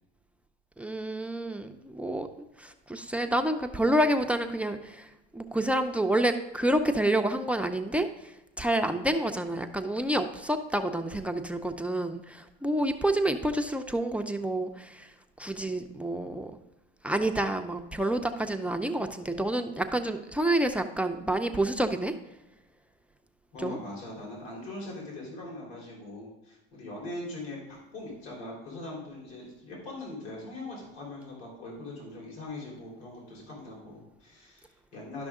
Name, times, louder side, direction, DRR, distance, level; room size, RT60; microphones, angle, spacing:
voice 1, 0.8-8.3 8.6-15.1 15.4-16.5 17.0-22.1 23.6-23.8, right 1 dB, 5° right, 8 dB, 0.5 m, -28 dB
voice 2, 23.5-35.3, left 2 dB, 60° left, -3 dB, 3.6 m, -41 dB
11.5 x 6.1 x 3.6 m, 0.97 s
supercardioid pair, 115°, 29 cm